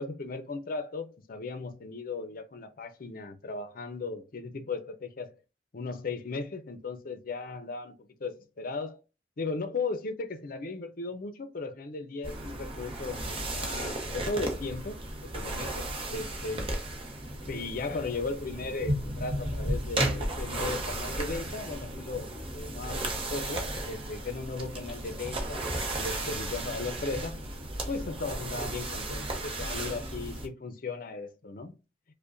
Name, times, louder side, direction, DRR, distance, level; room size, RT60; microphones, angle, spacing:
voice 1, 0.0-5.3 5.7-9.0 9.4-15.0 15.2-16.7 17.5-25.7 26.0-27.4 27.9-31.7, left 3 dB, 50° left, 0.6 m, -36 dB
sound 1, 12.2-30.5, right 1 dB, 30° right, 0.8 m, -34 dB
5.1 x 2.2 x 2.5 m
head